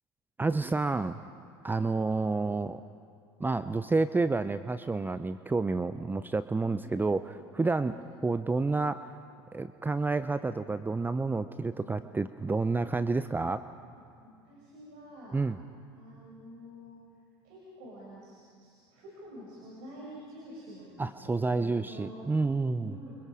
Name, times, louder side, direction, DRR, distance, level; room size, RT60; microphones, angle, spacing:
voice 1, 0.4-1.2 1.6-2.8 3.4-8.0 8.2-9.1 9.5-13.7 15.3-15.6 21.0-23.0, right 3 dB, 15° right, 12 dB, 0.7 m, -29 dB
voice 2, 1.6-1.9 6.5-6.9 7.8-8.0 11.1-12.2 13.0-13.3 14.2-15.4 15.9-17.0 17.4-22.2 22.8-23.2, equal, 65° right, -5 dB, 6.5 m, -49 dB
30.0 x 25.0 x 4.9 m, 2.3 s
hypercardioid pair, 75°, 14 cm